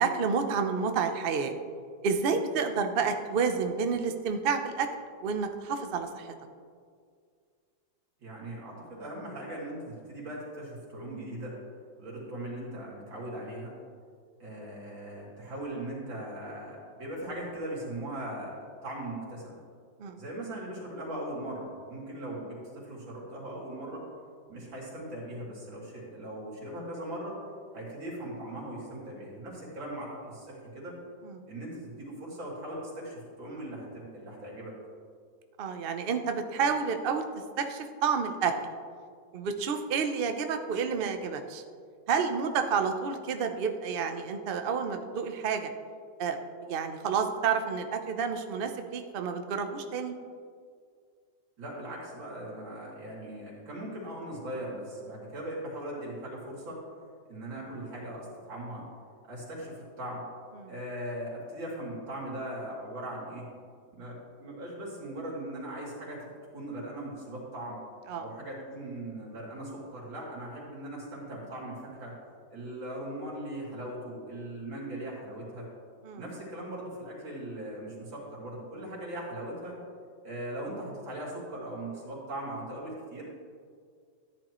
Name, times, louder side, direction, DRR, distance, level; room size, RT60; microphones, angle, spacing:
voice 1, 0.0-1.5 2.0-4.9 5.2-6.3 20.0-20.2 31.2-31.4 35.6-37.2 37.6-38.5 39.3-41.6 42.1-45.7 46.2-46.4 46.7-50.1 60.6-60.7 68.1-68.3 76.0-76.2, right 6 dB, 70° right, 6 dB, 0.5 m, -29 dB
voice 2, 8.2-11.6 12.0-13.7 14.4-18.5 18.8-19.6 20.2-24.0 24.5-27.4 27.7-31.0 31.5-34.7 51.6-56.8 57.3-58.8 59.2-60.2 60.7-63.5 63.9-67.8 68.2-72.1 72.5-75.7 76.2-79.8 80.2-83.2, right 1 dB, 90° right, -5 dB, 3.7 m, -39 dB
14.0 x 10.5 x 3.1 m, 2.1 s
omnidirectional pair, 2.0 m